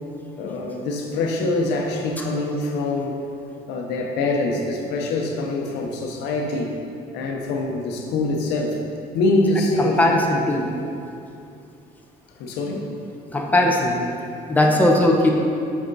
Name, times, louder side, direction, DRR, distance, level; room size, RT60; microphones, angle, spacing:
voice 1, 0.4-3.2 3.7-6.8 7.1-8.8 9.1-10.1 12.4-12.9, left 2 dB, 90° left, 1 dB, 0.9 m, -24 dB
voice 2, 10.0-10.7 13.3-14.0 14.5-15.3, left 1 dB, 10° left, 0 dB, 0.9 m, -18 dB
7.6 x 5.2 x 4.0 m, 2.6 s
cardioid pair, 110°, 17 cm